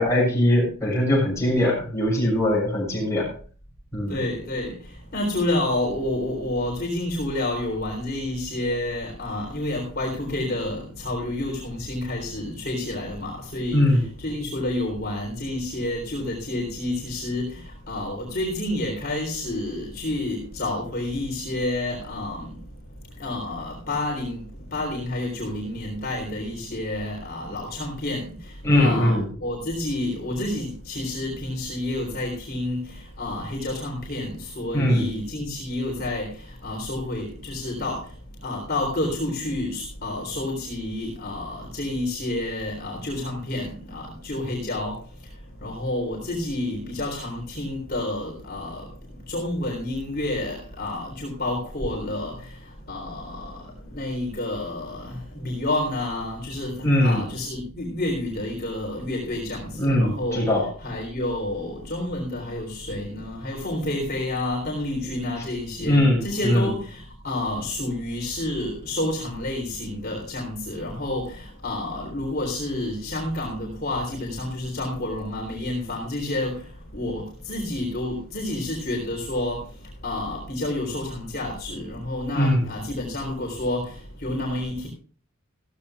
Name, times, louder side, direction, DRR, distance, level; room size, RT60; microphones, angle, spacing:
voice 1, 0.0-3.3 3.9-4.2 13.7-14.0 28.6-29.3 34.7-35.1 56.8-57.2 59.8-60.7 65.8-66.6 82.3-82.6, left 1 dB, 15° left, 6.7 m, -21 dB
voice 2, 4.1-4.8 5.1-22.6 23.2-24.4 24.7-38.1 38.4-45.0 45.6-48.9 49.3-52.5 52.9-60.5 60.8-76.6 76.9-79.6 80.0-84.9, left 1 dB, 45° left, 3.8 m, -29 dB
15.5 x 15.0 x 2.4 m
head